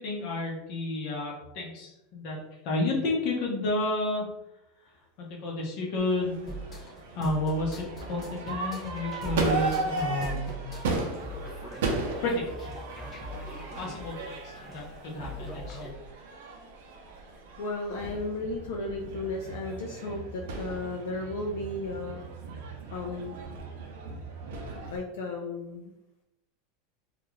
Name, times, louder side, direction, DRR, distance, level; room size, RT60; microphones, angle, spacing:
voice 1, 0.0-4.3 4.8-10.7 12.2-12.8 13.8-15.9, left 2 dB, 45° left, -1 dB, 0.8 m, -31 dB
Crowd / Fireworks, 6.0-25.0, right 3 dB, 80° right, 0.6 m, -36 dB
sound 1, 6.4-15.9, equal, 20° left, 0.4 m, -41 dB
voice 2, 17.6-22.2 22.9-23.4 24.9-25.9, left 2 dB, 80° left, 0 dB, 0.4 m, -34 dB
2.4 x 2.3 x 3.0 m, 0.90 s
supercardioid pair, 170°, 0 cm